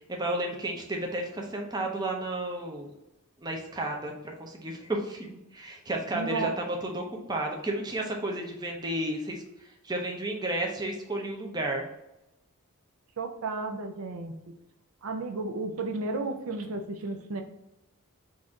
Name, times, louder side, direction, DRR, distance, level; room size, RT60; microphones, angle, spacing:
voice 1, 0.1-2.9 3.4-9.4 9.8-11.9, right 1 dB, 20° right, 1 dB, 0.6 m, -32 dB
voice 2, 6.1-6.6 13.2-14.4 15.0-17.4, right 3 dB, 70° right, 4 dB, 0.5 m, -33 dB
4.0 x 2.5 x 4.5 m, 0.91 s
head